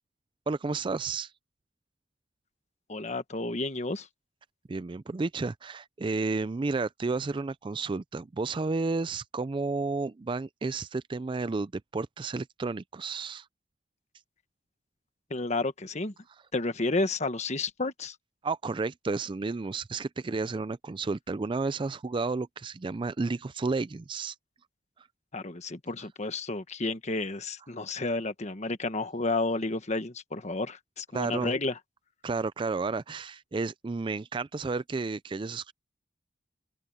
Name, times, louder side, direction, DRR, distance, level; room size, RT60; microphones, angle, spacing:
voice 1, 0.5-1.3 4.7-13.5 18.4-24.4 31.1-31.5 32.2-35.7, right 3 dB, 25° right, 0.4 m, -32 dB
voice 2, 2.9-4.1 15.3-16.1 16.5-18.2 25.3-31.8, left 2 dB, 35° left, 1.3 m, -31 dB
head